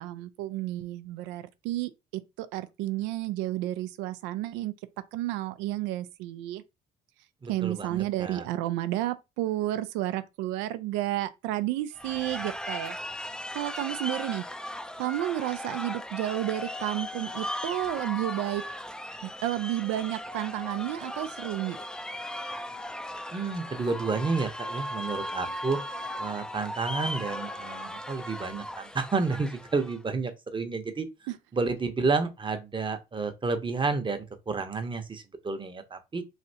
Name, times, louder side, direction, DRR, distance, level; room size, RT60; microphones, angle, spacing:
voice 1, 0.0-1.9 2.4-4.7 5.1-6.6 7.5-13.0 13.5-14.4 15.0-18.6 19.2-21.8 31.3-31.4, right 15 dB, 80° right, 0.4 m, -31 dB
voice 2, 7.4-8.4 23.3-25.8 26.2-31.1 31.5-36.2, right 4 dB, 25° right, 0.8 m, -30 dB
sound 1, 12.0-30.0, left 1 dB, 5° left, 0.4 m, -37 dB
3.2 x 2.7 x 2.7 m
hypercardioid pair, 60°, 19 cm